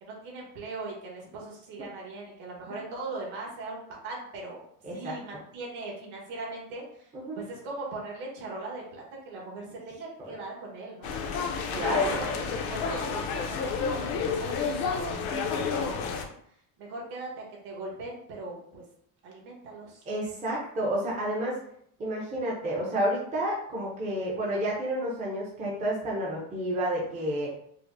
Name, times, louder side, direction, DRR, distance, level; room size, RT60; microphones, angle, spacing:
voice 1, 0.0-4.6 4.9-11.1 11.7-16.2 16.8-18.8 19.2-20.0, right 2 dB, 65° right, -2 dB, 1.3 m, -40 dB
voice 2, 4.8-5.2 7.1-7.4 11.7-12.2 20.1-21.6 22.0-27.5, right 1 dB, 15° right, -4 dB, 0.5 m, -30 dB
sound 1, 11.0-16.2, left 5 dB, 75° left, 0.6 m, -30 dB
4.9 x 2.0 x 2.5 m, 0.67 s
cardioid pair, 175°, 44 cm